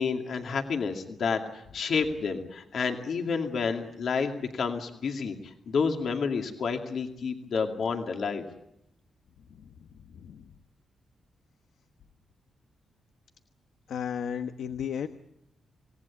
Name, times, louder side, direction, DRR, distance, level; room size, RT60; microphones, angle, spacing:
voice 1, 0.0-8.4, left 5 dB, 60° left, 3 dB, 2.4 m, -30 dB
voice 2, 10.1-10.5 13.9-15.1, left 8 dB, 85° left, 9 dB, 1.1 m, -34 dB
27.0 x 18.0 x 8.6 m, 0.81 s
wide cardioid pair, 160°, 0 cm